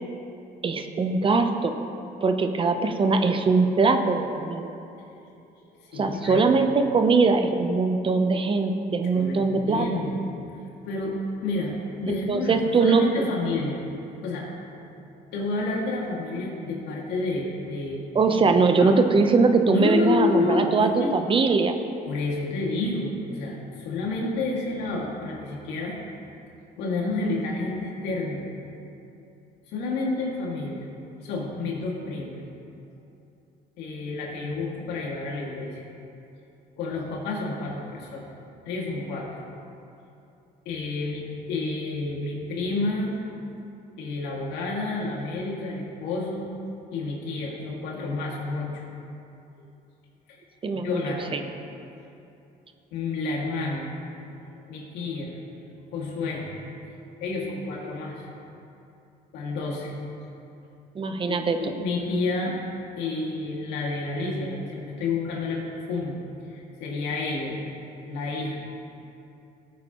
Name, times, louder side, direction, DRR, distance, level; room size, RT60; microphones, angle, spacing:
voice 1, 0.6-1.7 2.2-4.7 5.9-9.9 12.3-13.3 18.1-21.7 50.6-51.0 51.3-51.4 60.9-61.6, right 4 dB, 30° right, 7 dB, 0.8 m, -21 dB
voice 2, 5.8-6.4 9.1-13.8 14.2-14.8 15.3-18.3 18.8-19.0 19.7-21.1 22.1-25.9 26.8-28.4 29.7-30.9 31.2-32.3 33.8-35.8 36.8-38.3 38.7-39.4 40.7-43.1 44.0-46.5 46.9-48.8 49.6-49.7 50.3-50.4 50.7-51.4 52.9-53.9 54.4-55.3 55.9-56.7 57.2-58.3 59.3-59.9 61.3-62.6 63.0-66.2 66.5-67.6 68.0-68.6, left 3 dB, 90° left, -2 dB, 2.2 m, -30 dB
17.5 x 8.4 x 3.0 m, 2.7 s
cardioid pair, 110°, 17 cm